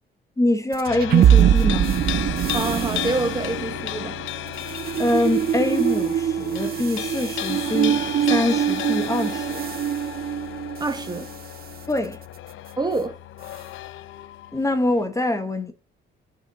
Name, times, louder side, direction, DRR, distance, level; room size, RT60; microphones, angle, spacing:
voice 1, 0.4-2.0 5.0-9.6 11.9-12.2 14.5-15.7, left 2 dB, 15° left, 0.9 m, -24 dB
sound 1, 0.7-11.2, right 10 dB, 50° right, 0.5 m, -23 dB
sound 2, 0.9-15.0, left 13 dB, 80° left, 0.5 m, -34 dB
voice 2, 2.5-4.2 10.8-11.3 12.8-13.2, right 3 dB, 20° right, 1.1 m, -26 dB
5.7 x 4.2 x 5.9 m
cardioid pair, 90°, 20 cm